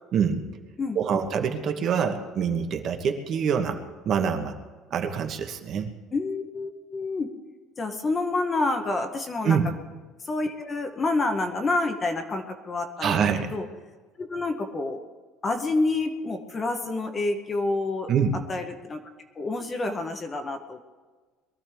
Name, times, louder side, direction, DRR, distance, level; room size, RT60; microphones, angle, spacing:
voice 1, 0.1-0.4 0.9-3.8 4.0-4.5 4.9-5.9 9.4-9.7 13.0-13.5 18.1-18.4, right 7 dB, 35° right, 5 dB, 1.1 m, -25 dB
voice 2, 0.8-1.2 6.1-7.3 7.8-9.6 10.2-13.2 13.5-13.7 14.2-15.0 15.4-18.1 18.5-19.0 19.3-20.8, left 2 dB, 15° left, 6 dB, 0.8 m, -28 dB
22.5 x 14.0 x 3.5 m, 1.4 s
cardioid pair, 180°, 0 cm